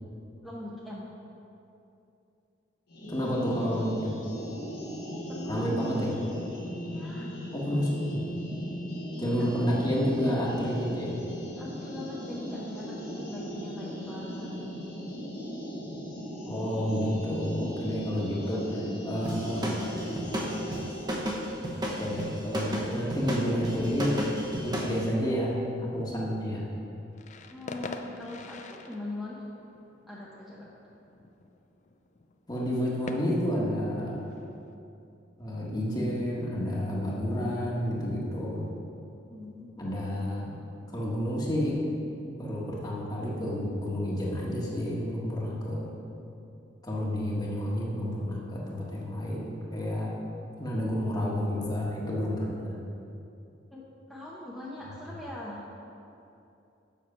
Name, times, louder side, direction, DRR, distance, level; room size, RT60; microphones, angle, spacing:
voice 1, 0.4-1.1 5.3-6.0 6.8-7.3 9.1-9.9 11.6-14.6 17.8-20.1 27.5-29.4 30.1-30.7 39.3-39.9 53.7-55.6, left 1 dB, ahead, -8 dB, 0.8 m, -42 dB
sound 1, 2.9-21.2, equal, 60° left, 1.8 m, -37 dB
voice 2, 3.1-4.2 5.5-6.1 7.5-8.2 9.2-11.2 16.4-18.7 19.0-19.7 21.8-24.3 24.6-25.6 25.9-26.6 32.5-34.2 35.4-38.6 39.8-40.5 40.9-41.9 42.4-45.9 46.8-50.2 50.6-52.8, equal, 20° left, -4 dB, 1.5 m, -30 dB
sound 2, 19.2-25.0, equal, 25° right, 1.0 m, -33 dB
sound 3, 27.1-34.7, left 3 dB, 40° left, 0.4 m, -45 dB
7.5 x 6.1 x 5.6 m, 2.8 s
head